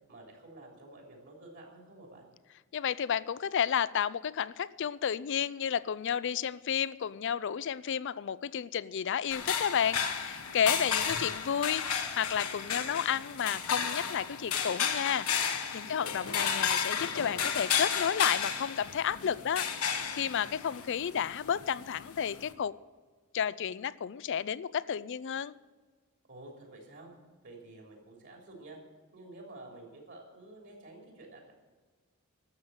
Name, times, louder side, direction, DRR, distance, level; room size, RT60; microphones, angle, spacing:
voice 1, 0.1-2.3 15.8-16.4 26.3-28.8 29.1-31.5, right 2 dB, 55° right, 1 dB, 3.3 m, -50 dB
voice 2, 2.7-22.7 23.3-25.5, left 8 dB, 55° left, 19 dB, 0.4 m, -32 dB
sound 1, 9.3-22.5, left 7 dB, 85° left, 1.4 m, -33 dB
12.5 x 7.5 x 8.8 m, 1.4 s
head